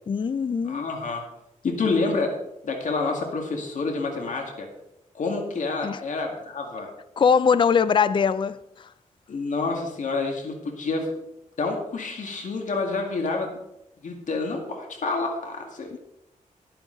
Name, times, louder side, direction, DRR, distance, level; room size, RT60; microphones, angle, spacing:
voice 1, 0.1-0.8 5.8-6.0 7.2-8.9 15.9-16.0, left 6 dB, 35° left, 0.4 m, -22 dB
voice 2, 0.6-1.2 1.6-2.4 2.6-4.7 5.1-6.9 9.3-11.2 11.6-13.6 14.0-16.0, left 3 dB, 70° left, 2.0 m, -28 dB
11.0 x 10.0 x 3.9 m
wide cardioid pair, 100°, 14 cm